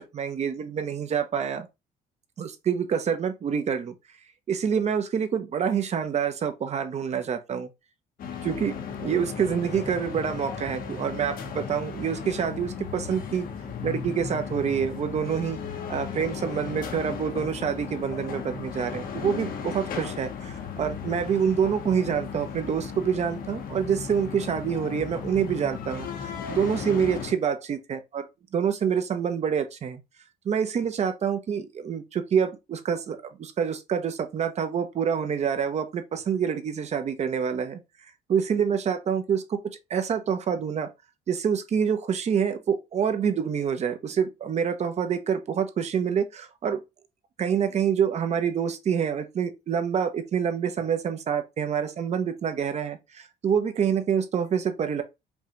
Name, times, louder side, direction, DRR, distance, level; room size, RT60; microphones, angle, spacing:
voice 1, 0.0-1.7 2.4-3.9 4.5-7.7 8.4-8.7 9.0-13.5 13.8-15.6 15.9-28.2 28.5-30.0 30.4-37.8 38.3-39.6 39.9-40.9 41.3-46.8 47.4-55.0, right 7 dB, 40° right, 0.7 m, -27 dB
sound 1, 8.2-27.3, left 6 dB, 55° left, 1.0 m, -36 dB
5.4 x 2.4 x 2.9 m
cardioid pair, 110°, 17 cm